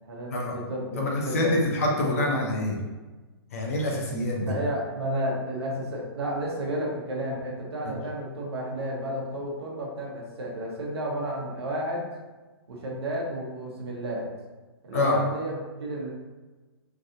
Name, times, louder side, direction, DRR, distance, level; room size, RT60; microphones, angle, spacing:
voice 1, 0.0-1.5 2.0-2.3 4.4-12.0 12.7-14.3 14.8-16.1, right 1 dB, 80° right, -3 dB, 1.0 m, -32 dB
voice 2, 0.9-2.8 3.5-4.5 7.8-7.9 14.9-15.2, left 2 dB, 35° left, -1 dB, 0.5 m, -26 dB
3.2 x 2.5 x 2.6 m, 1.2 s
hypercardioid pair, 175°, 13 cm